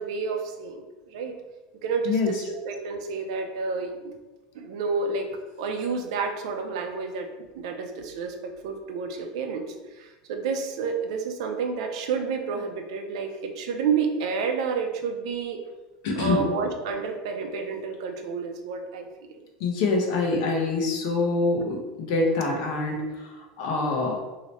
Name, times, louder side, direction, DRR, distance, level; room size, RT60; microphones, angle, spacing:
voice 1, 0.0-1.3 1.8-4.1 4.5-5.3 5.6-7.3 7.6-15.6 16.2-19.1, right 5 dB, 80° right, 4 dB, 0.5 m, -30 dB
voice 2, 16.0-16.4 19.6-23.3 23.6-24.2, left 3 dB, 70° left, 1 dB, 0.8 m, -25 dB
3.1 x 2.8 x 2.9 m, 1.1 s
supercardioid pair, 145°, 3 cm